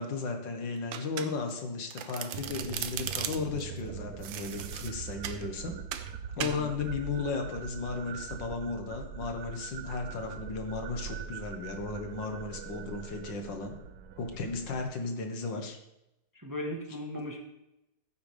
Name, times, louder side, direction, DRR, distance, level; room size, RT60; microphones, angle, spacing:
voice 1, 0.0-5.8 6.4-13.8 14.2-15.8, left 4 dB, 75° left, 5 dB, 2.0 m, -35 dB
Domestic sounds home sounds, 0.9-1.6 1.9-3.6 4.2-5.4 5.9-6.1 6.4-6.6, right 10 dB, 85° right, 1.5 m, -37 dB
sound 1, 2.3-14.8, right 9 dB, 70° right, 0.9 m, -43 dB
voice 2, 6.4-6.7 16.3-17.4, left 1 dB, 10° right, 1 dB, 1.1 m, -37 dB
14.5 x 8.0 x 3.4 m, 0.88 s
omnidirectional pair, 2.0 m